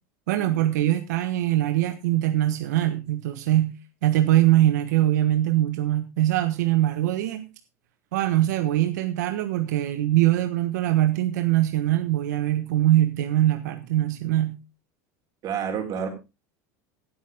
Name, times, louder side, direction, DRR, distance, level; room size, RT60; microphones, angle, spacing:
voice 1, 0.3-3.7 4.0-7.4 8.1-14.6, right 14 dB, 90° right, 9 dB, 1.3 m, -22 dB
voice 2, 15.4-16.1, right 7 dB, 40° right, 5 dB, 4.4 m, -29 dB
18.0 x 8.3 x 3.6 m, 0.27 s
supercardioid pair, 130°, 9 cm